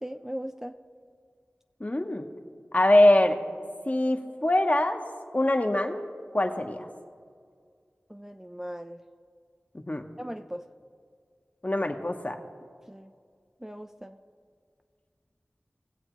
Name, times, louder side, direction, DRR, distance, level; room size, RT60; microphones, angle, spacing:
voice 1, 0.0-0.7 8.1-9.0 10.2-10.6 12.9-13.1 13.6-14.2, equal, 10° right, 6 dB, 0.4 m, -38 dB
voice 2, 1.8-2.3 2.7-3.4 3.9-5.0 5.3-6.0 6.3-6.9 9.7-10.0 11.6-12.4, left 1 dB, 35° left, 5 dB, 0.9 m, -23 dB
19.5 x 7.9 x 3.1 m, 2.1 s
wide cardioid pair, 40°, 4 cm